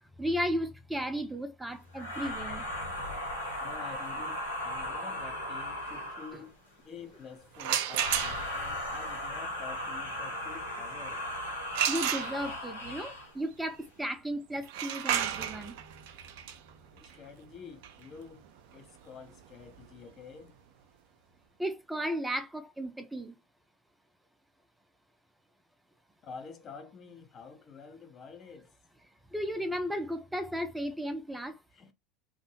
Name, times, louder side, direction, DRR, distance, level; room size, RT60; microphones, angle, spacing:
voice 1, 0.2-2.7 11.9-15.8 21.6-23.3 29.3-31.6, equal, 5° right, 0.5 m, -34 dB
sound 1, 1.9-6.5 7.9-13.3, left 1 dB, 90° left, 0.9 m, -37 dB
voice 2, 3.6-6.6 6.8-11.3 17.0-18.5 18.7-20.5 26.2-28.7 31.7-31.9, left 6 dB, 40° left, 0.6 m, -48 dB
sound 2, 7.5-8.7 11.7-12.8 14.6-20.3, right 10 dB, 65° right, 0.4 m, -33 dB
2.6 x 2.1 x 2.8 m
figure-of-eight pair, 75°, 0 cm